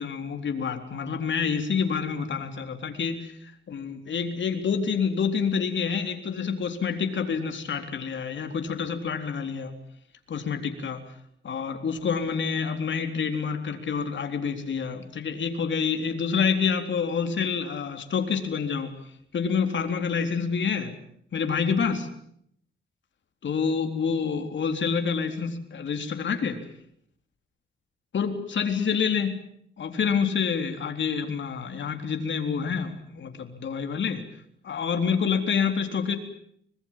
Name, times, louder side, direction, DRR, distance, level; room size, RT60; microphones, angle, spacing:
voice 1, 0.0-9.7 10.3-11.0 11.4-18.9 19.3-20.9 21.3-22.1 23.4-26.6 28.1-29.4 29.8-34.2 34.6-36.2, left 6 dB, 65° left, 5 dB, 3.9 m, -27 dB
25.0 x 22.0 x 7.6 m, 0.68 s
cardioid pair, 90°, 21 cm